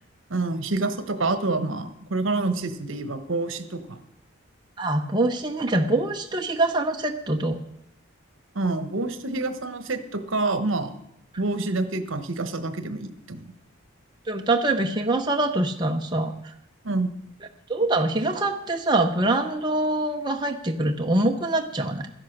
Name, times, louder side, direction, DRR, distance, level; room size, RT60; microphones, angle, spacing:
voice 1, 0.3-4.0 8.5-10.9 11.4-13.5 16.8-17.1, right 2 dB, 70° right, 10 dB, 1.1 m, -27 dB
voice 2, 4.8-7.6 14.3-16.5 17.7-22.1, right 2 dB, 20° right, 3 dB, 0.7 m, -24 dB
13.0 x 10.5 x 6.5 m, 0.79 s
head